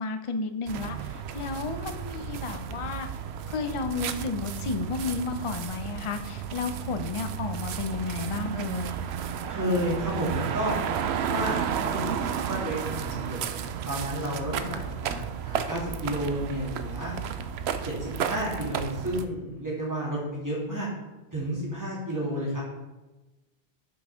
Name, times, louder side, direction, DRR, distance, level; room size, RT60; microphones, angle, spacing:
voice 1, 0.0-3.1 3.5-9.0, left 4 dB, 40° left, 8 dB, 0.5 m, -32 dB
sound 1, 0.7-19.3, right 8 dB, 80° right, 0.8 m, -33 dB
voice 2, 9.5-10.8 11.3-13.4 13.8-17.1 17.8-20.9 21.3-22.6, equal, 15° right, -6 dB, 2.8 m, -31 dB
6.0 x 5.9 x 5.0 m, 1.1 s
omnidirectional pair, 1.1 m